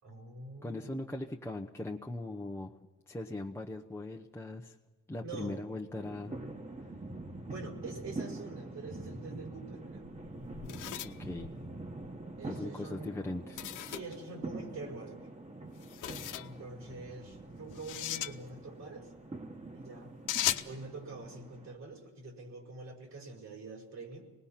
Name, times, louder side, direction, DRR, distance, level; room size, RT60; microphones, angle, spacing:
voice 1, 0.0-1.1 5.2-5.6 7.1-7.2 7.5-10.1 12.4-13.1 13.9-15.3 16.4-19.1 19.7-20.1 20.6-24.2, right 3 dB, 65° right, 2 dB, 5.2 m, -45 dB
voice 2, 0.6-2.7 3.1-4.8 5.1-6.3 11.0-11.5 12.5-13.7, left 2 dB, 10° left, 0 dB, 0.9 m, -40 dB
sound 1, 5.9-21.7, right 2 dB, 20° right, 1.7 m, -45 dB
sound 2, 9.9-12.2 13.6-14.2 15.8-16.5 17.7-18.3 20.3-20.7, left 12 dB, 85° left, 0.9 m, -37 dB
26.0 x 19.5 x 5.8 m, 1.3 s
cardioid pair, 90°, 30 cm